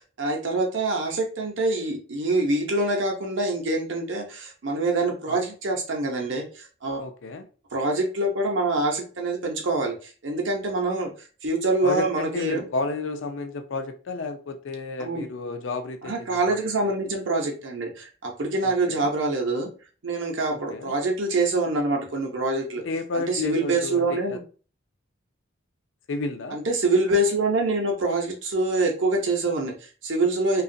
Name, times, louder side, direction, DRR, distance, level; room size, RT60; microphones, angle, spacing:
voice 1, 0.0-7.0 7.7-11.1 11.4-12.6 15.0-15.3 16.0-19.7 20.0-22.8 23.1-24.4 26.5-30.6, right 2 dB, 60° right, 0.7 m, -25 dB
voice 2, 7.0-7.4 11.8-16.9 18.6-19.1 20.5-20.9 22.8-24.4 26.1-26.6, left 3 dB, 65° left, 0.4 m, -32 dB
2.9 x 2.4 x 2.6 m
head